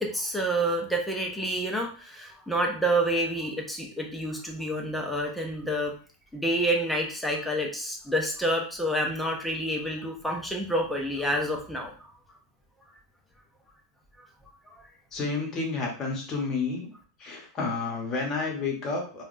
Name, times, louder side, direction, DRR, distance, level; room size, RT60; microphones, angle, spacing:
voice 1, 0.0-5.9 6.3-12.2 14.2-14.3 14.7-14.9, right 1 dB, ahead, 1 dB, 0.4 m, -28 dB
voice 2, 15.1-16.9 17.2-19.2, left 4 dB, 20° left, -1 dB, 0.9 m, -30 dB
3.3 x 2.2 x 2.5 m, 0.40 s
supercardioid pair, 170°, 2 cm